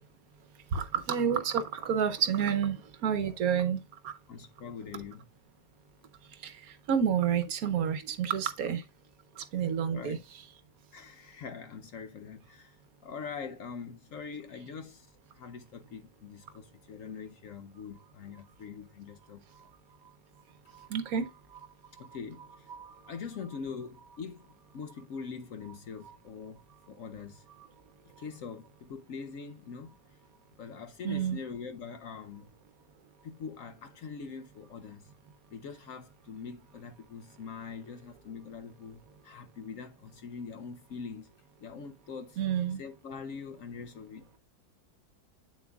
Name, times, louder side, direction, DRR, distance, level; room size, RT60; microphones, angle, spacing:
voice 1, 0.7-4.2 6.3-8.8 9.4-10.4 19.5-19.7 20.0-20.1 20.7-22.1 22.7-23.1 26.0-26.2 27.6-27.7 31.0-31.4 42.4-42.8, right 8 dB, 65° right, 1.1 m, -30 dB
voice 2, 4.3-5.3 9.9-10.2 10.9-15.1 15.3-19.4 20.7-20.9 22.0-22.7 23.1-27.5 28.0-30.0 30.6-32.5 33.2-35.1 35.5-41.3 41.6-42.4 42.8-44.4, left 6 dB, 65° left, 0.9 m, -43 dB
8.5 x 7.3 x 2.3 m
omnidirectional pair, 1.8 m